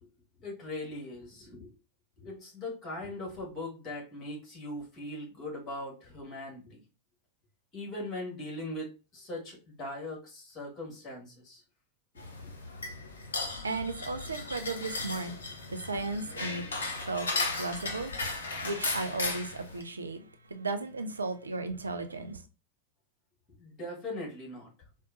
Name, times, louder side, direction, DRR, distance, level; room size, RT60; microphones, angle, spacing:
voice 1, 0.4-1.7 2.2-6.8 7.7-11.6 23.6-24.7, left 1 dB, 25° left, 1.7 m, -40 dB
sound 1, 12.2-19.8, left 3 dB, 70° left, 0.7 m, -36 dB
voice 2, 13.6-17.3 17.6-18.1 18.6-20.2 20.5-22.4, right 3 dB, 75° right, 0.4 m, -35 dB
4.6 x 2.1 x 2.5 m
figure-of-eight pair, 90°, 0 cm